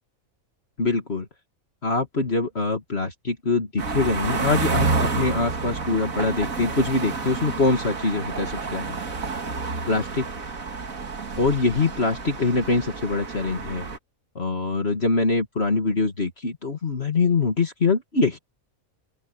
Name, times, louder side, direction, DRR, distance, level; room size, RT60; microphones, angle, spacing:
voice 1, 0.8-1.3 1.8-9.0 9.9-10.3 11.4-13.9 14.4-18.4, left 3 dB, 45° left, 2.5 m, -24 dB
sound 1, 3.8-14.0, right 4 dB, 75° right, 2.5 m, -29 dB
open air
omnidirectional pair, 1.4 m